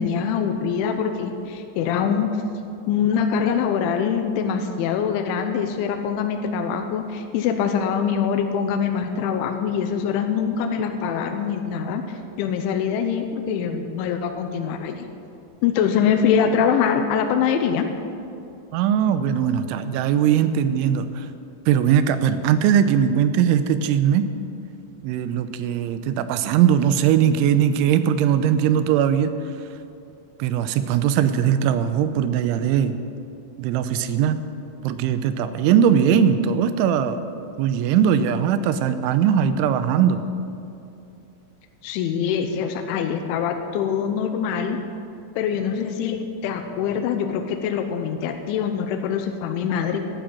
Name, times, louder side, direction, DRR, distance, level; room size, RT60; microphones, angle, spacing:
voice 1, 0.0-2.4 2.9-15.1 15.6-17.9 41.8-44.8 45.4-50.0, left 7 dB, 85° left, 5 dB, 3.2 m, -24 dB
voice 2, 18.7-21.3 21.7-24.3 25.0-29.3 30.4-33.0 33.6-34.4 34.8-37.2 37.6-40.2, right 8 dB, 80° right, 11 dB, 3.1 m, -20 dB
12.5 x 12.5 x 7.5 m, 2.6 s
omnidirectional pair, 5.5 m